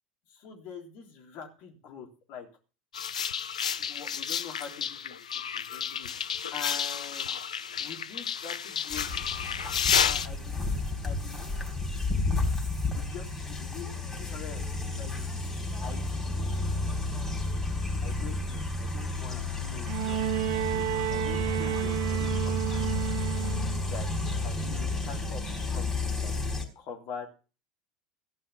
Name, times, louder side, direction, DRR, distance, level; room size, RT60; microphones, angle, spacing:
voice 1, 0.3-2.5 3.8-6.1 6.5-7.3 7.8-9.1 10.0-11.7 12.8-14.6 15.0-15.3 15.8-16.8 18.0-20.2 20.7-22.9 23.7-27.3, left 6 dB, 55° left, 2 dB, 3.5 m, -45 dB
sound 1, 2.9-10.3, left 8 dB, 80° left, 0.5 m, -31 dB
sound 2, 8.9-26.6, left 2 dB, 10° left, 4.2 m, -31 dB
Bowed string instrument, 19.9-23.9 25.1-25.2, right 14 dB, 60° right, 0.9 m, -31 dB
15.0 x 5.7 x 6.9 m, 0.35 s
figure-of-eight pair, 75°, 4 cm